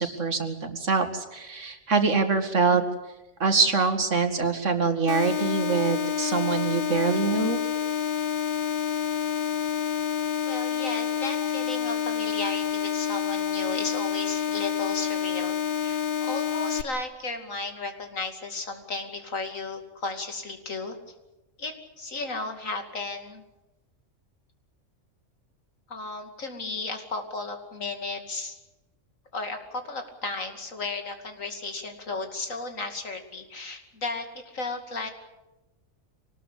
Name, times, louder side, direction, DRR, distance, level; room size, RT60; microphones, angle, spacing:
voice 1, 0.0-2.8 3.4-7.6, right 4 dB, 65° right, 7 dB, 2.4 m, -24 dB
sound 1, 5.1-16.8, left 8 dB, 45° left, 1.1 m, -28 dB
voice 2, 10.5-21.0 21.6-23.4 25.9-28.6 29.3-35.1, left 3 dB, 80° left, 5 dB, 2.9 m, -34 dB
24.5 x 19.5 x 8.4 m, 1.0 s
omnidirectional pair, 1.3 m